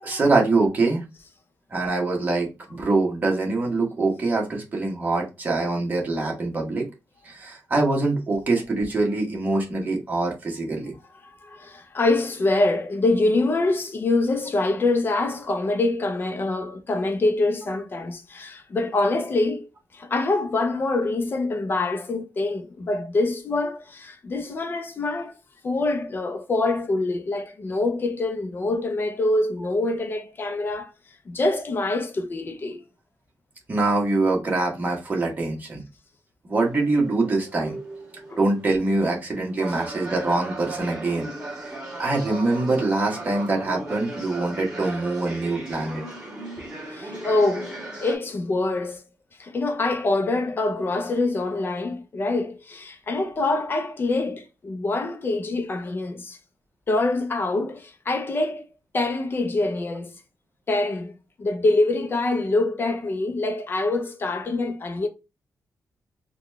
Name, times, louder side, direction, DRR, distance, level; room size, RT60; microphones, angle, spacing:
voice 1, 0.0-1.1 1.7-6.9 7.2-10.9 33.7-35.8 36.4-37.8 38.4-41.3 41.7-41.8 42.0-46.0, right 2 dB, 25° right, 1.1 m, -24 dB
voice 2, 11.2-19.7 19.9-25.3 25.6-30.9 31.3-32.8 38.3-38.4 46.0-46.1 46.6-47.8 48.0-49.0 49.4-56.4 56.9-58.6 58.9-60.1 60.7-65.1, left 2 dB, 35° left, 0.6 m, -25 dB
sound 1, 36.6-48.2, right 2 dB, 10° right, 1.8 m, -37 dB
3.9 x 2.3 x 3.1 m
wide cardioid pair, 160°, 7 cm